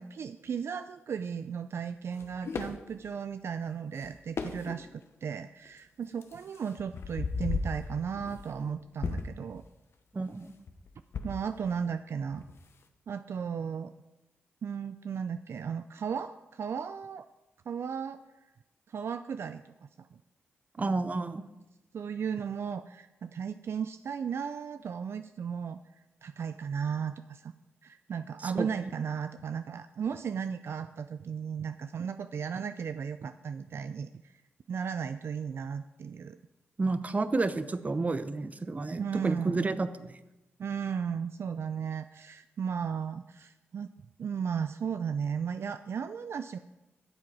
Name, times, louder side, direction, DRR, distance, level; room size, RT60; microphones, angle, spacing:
voice 1, 0.0-9.6 11.2-12.4 13.1-13.9 14.6-17.3 17.7-18.2 18.9-20.2 20.8-21.0 21.9-25.8 26.2-27.5 27.8-34.1 34.7-36.4 39.0-39.7 40.6-43.9 44.2-46.6, right 7 dB, 60° right, 11 dB, 0.4 m, -35 dB
sound 1, 2.1-2.8 4.0-4.1 4.4-5.0 5.7-5.8 6.2-8.7 9.0-9.5 10.7-11.9 12.2-12.5, left 4 dB, 65° left, 0.9 m, -36 dB
voice 2, 10.1-10.5 20.8-21.4 28.4-28.7 36.8-40.2, right 3 dB, 30° right, 13 dB, 0.7 m, -30 dB
12.0 x 7.6 x 4.7 m, 1.0 s
cardioid pair, 70°, 5 cm